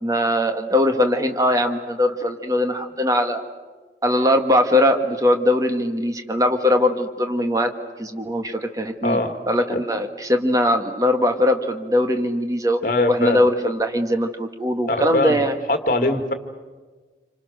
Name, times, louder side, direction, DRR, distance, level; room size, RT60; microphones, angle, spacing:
voice 1, 0.0-3.4 4.0-7.7 8.0-9.2 9.5-12.8 13.1-15.5, left 1 dB, 20° right, 5 dB, 1.5 m, -20 dB
voice 2, 9.0-9.3 9.7-9.8 12.8-13.4 14.9-15.3 15.7-16.3, left 2 dB, 50° left, 6 dB, 2.0 m, -21 dB
27.5 x 26.0 x 6.5 m, 1.4 s
head